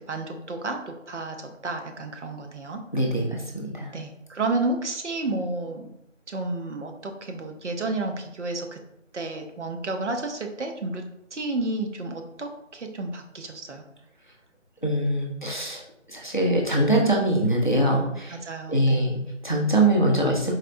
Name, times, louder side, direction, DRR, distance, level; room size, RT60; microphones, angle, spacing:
voice 1, 0.0-2.8 3.9-5.9 6.3-8.8 9.1-11.0 11.3-13.8 18.3-19.1, right 2 dB, 65° right, 4 dB, 0.6 m, -31 dB
voice 2, 2.9-3.9 14.8-15.8 16.1-18.4 18.7-20.5, right 1 dB, 40° left, -1 dB, 0.5 m, -23 dB
4.1 x 2.1 x 2.5 m, 0.80 s
figure-of-eight pair, 170°, 38 cm